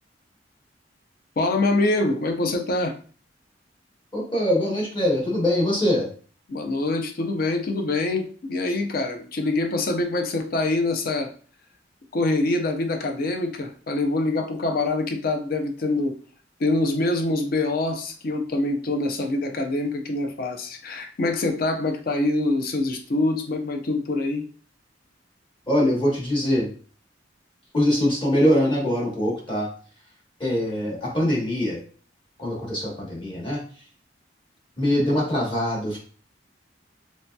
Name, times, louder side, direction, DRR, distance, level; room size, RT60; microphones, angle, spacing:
voice 1, 1.4-2.9 6.5-11.3 12.1-16.2 16.6-24.4, left 2 dB, 55° left, 5 dB, 0.5 m, -25 dB
voice 2, 4.1-6.1 25.7-26.7 27.7-29.7 30.4-31.8 32.4-33.6 34.8-36.0, left 1 dB, 30° left, -4 dB, 1.1 m, -23 dB
3.0 x 2.7 x 2.2 m, 0.41 s
head